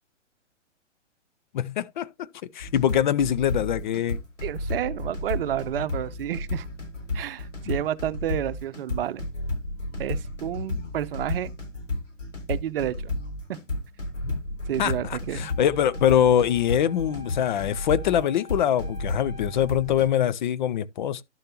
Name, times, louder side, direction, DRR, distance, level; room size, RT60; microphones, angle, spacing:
voice 1, 1.5-2.1 2.5-4.2 10.8-10.9 14.2-14.4 14.8-21.2, left 10 dB, 40° left, 0.5 m, -23 dB
sound 1, 2.6-20.1, left 2 dB, 90° left, 6.4 m, -32 dB
voice 2, 4.4-6.7 7.1-9.3 10.0-11.5 12.5-13.1 13.5-13.6 14.7-15.5, right 11 dB, 50° right, 0.8 m, -30 dB
Wind instrument woodwind instrument, 15.5-19.9, left 3 dB, 25° left, 4.0 m, -48 dB
12.0 x 6.6 x 2.9 m
hypercardioid pair, 125°, 36 cm